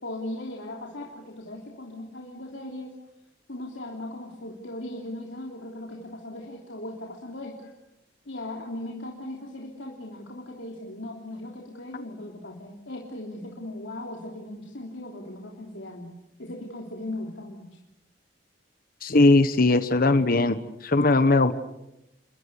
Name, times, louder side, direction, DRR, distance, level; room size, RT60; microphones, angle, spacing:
voice 1, 0.0-2.9 3.5-7.7 8.3-16.1 16.4-17.7, left 1 dB, 90° left, 0 dB, 3.3 m, -38 dB
voice 2, 19.0-21.5, left 2 dB, 50° left, 11 dB, 1.2 m, -20 dB
29.0 x 22.5 x 7.1 m, 0.89 s
head